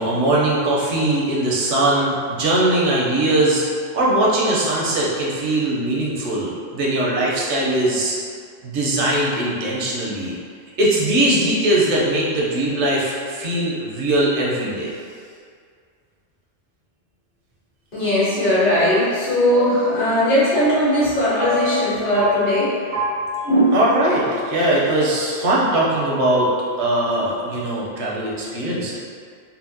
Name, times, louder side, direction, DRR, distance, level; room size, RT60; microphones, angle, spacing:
voice 1, 0.0-3.6 3.9-8.2 8.6-10.4 10.8-14.9 23.7-26.5 26.8-29.0, right 1 dB, 85° right, -5 dB, 1.0 m, -20 dB
voice 2, 17.9-22.7 23.4-23.8, equal, 50° left, -12 dB, 1.5 m, -19 dB
sound 1, 18.0-25.0, left 2 dB, 30° right, 0.3 m, -29 dB
4.1 x 2.1 x 2.7 m, 2.2 s
omnidirectional pair, 1.2 m